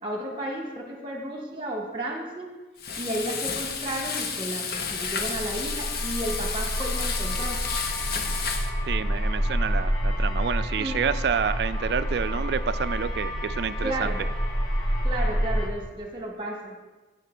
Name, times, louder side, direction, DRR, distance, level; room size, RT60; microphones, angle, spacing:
voice 1, 0.0-2.5 3.0-7.6 10.8-11.0 13.8-14.2 15.0-16.8, right 1 dB, 25° right, 1 dB, 1.4 m, -33 dB
Frying (food), 2.8-8.7, left 5 dB, 55° left, 0.8 m, -31 dB
sound 1, 5.0-15.7, equal, 20° left, 1.2 m, -28 dB
voice 2, 8.9-14.1, right 6 dB, 65° right, 14 dB, 0.3 m, -28 dB
10.5 x 7.7 x 3.3 m, 1.2 s
head